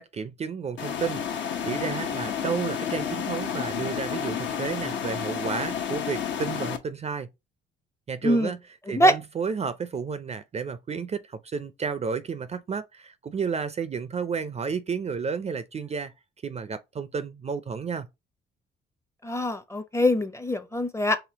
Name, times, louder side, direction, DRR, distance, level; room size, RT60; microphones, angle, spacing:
voice 1, 0.0-7.3 8.1-8.6 8.9-16.1 16.4-18.1, right 6 dB, 35° right, 0.4 m, -32 dB
sound 1, 0.8-6.8, left 8 dB, 70° left, 0.8 m, -31 dB
voice 2, 19.2-21.2, equal, 15° left, 0.6 m, -23 dB
4.9 x 2.9 x 2.8 m
cardioid pair, 90°, 20 cm